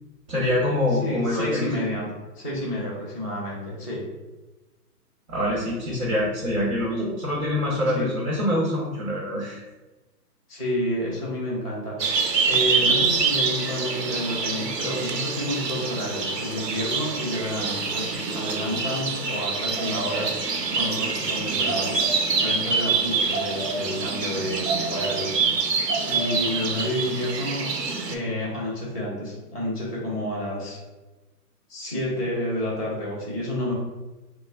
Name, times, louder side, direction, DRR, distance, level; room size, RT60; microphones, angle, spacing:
voice 1, 0.3-1.7 5.3-9.7, left 1 dB, 45° right, -4 dB, 1.3 m, -25 dB
voice 2, 1.0-2.1 2.3-4.1 6.9-7.1 7.9-8.1 10.5-12.1 12.4-20.3 20.7-21.9 22.4-25.7 26.1-27.7 28.1-30.8 31.7-33.7, left 1 dB, 15° right, -7 dB, 0.8 m, -30 dB
sound 1, 12.0-28.1, right 4 dB, 90° right, 1.0 m, -26 dB
5.8 x 2.1 x 3.5 m, 1.1 s
hypercardioid pair, 165°, 48 cm